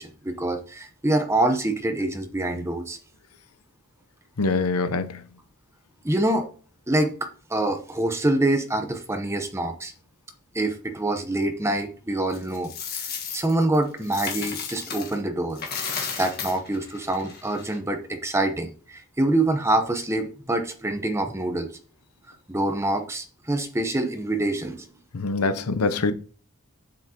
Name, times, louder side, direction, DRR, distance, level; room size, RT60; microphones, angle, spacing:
voice 1, 0.0-3.0 6.0-6.5 6.9-9.9 10.5-12.7 13.0-13.1 13.3-15.6 16.2-21.7 22.5-24.9, right 1 dB, 10° right, 0.8 m, -25 dB
voice 2, 4.4-5.2 25.1-26.1, left 3 dB, 75° left, 0.7 m, -24 dB
Coin (dropping), 12.3-15.2 15.5-17.8, left 6 dB, 45° left, 1.5 m, -34 dB
7.5 x 7.1 x 2.9 m
head